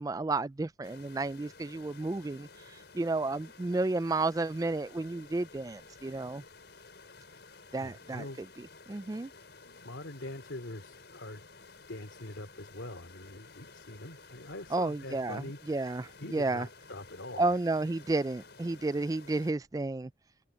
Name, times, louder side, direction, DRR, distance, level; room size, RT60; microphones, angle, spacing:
voice 1, 0.0-6.4 7.7-9.3 14.7-16.7 17.4-20.1, right 2 dB, 20° right, 0.3 m, -32 dB
sound 1, 0.8-19.5, left 4 dB, 65° left, 5.9 m, -53 dB
voice 2, 7.8-8.4 9.6-11.4 11.9-17.5, left 1 dB, 90° left, 2.8 m, -44 dB
open air
head